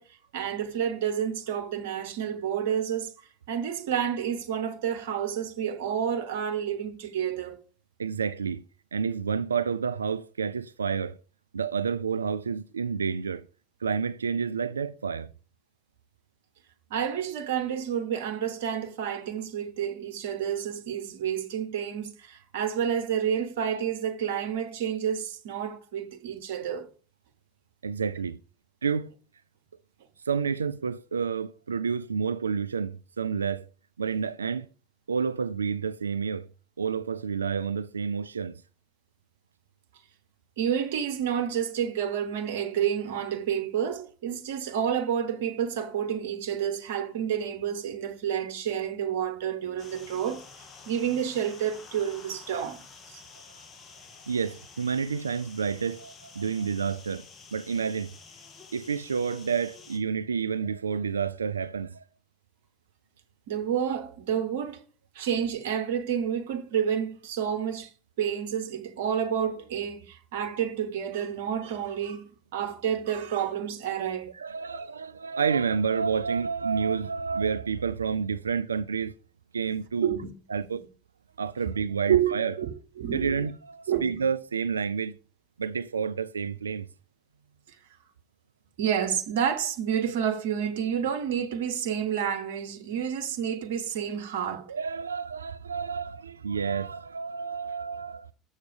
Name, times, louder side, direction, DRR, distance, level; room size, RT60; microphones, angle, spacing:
voice 1, 0.0-7.6 16.9-26.9 40.6-53.2 53.7-53.8 63.5-64.8 65.1-67.9 68.2-74.3 74.7-74.8 80.0-80.3 80.6-80.8 82.1-83.4 83.9-84.2 87.7-87.8 88.8-94.7, right 9 dB, 70° right, 1.0 m, -29 dB
voice 2, 8.0-8.6 8.9-11.2 11.5-13.4 13.8-15.3 27.8-28.4 28.8-29.1 30.3-33.7 34.0-34.7 35.1-36.5 36.8-38.6 54.3-57.2 57.5-58.1 58.7-62.0 74.4-79.1 79.5-80.2 80.5-80.9 81.4-82.5 83.1-85.2 85.6-86.9 94.7-98.3, right 6 dB, 90° right, 0.4 m, -29 dB
sound 1, 49.8-60.0, left 5 dB, 35° left, 2.0 m, -50 dB
7.2 x 6.5 x 4.9 m
hypercardioid pair, 75°, 0 cm